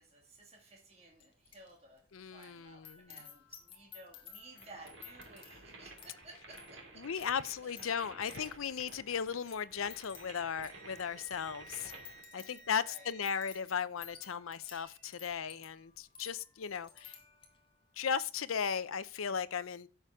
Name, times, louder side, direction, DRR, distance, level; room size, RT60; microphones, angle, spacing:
voice 1, 0.0-7.1 7.8-7.9 12.3-13.1, right 2 dB, 30° right, 2.1 m, -56 dB
sound 1, 1.2-1.7 2.0-17.7 18.2-18.5, left 7 dB, 25° left, 1.9 m, -56 dB
voice 2, 2.1-3.1 7.0-11.9 12.3-17.2 18.0-19.9, left 7 dB, 85° left, 0.6 m, -36 dB
sound 2, 4.5-12.2, right 2 dB, 65° right, 2.4 m, -53 dB
Wind instrument woodwind instrument, 9.7-13.6, right 1 dB, 55° left, 1.7 m, -56 dB
11.0 x 6.9 x 3.6 m
head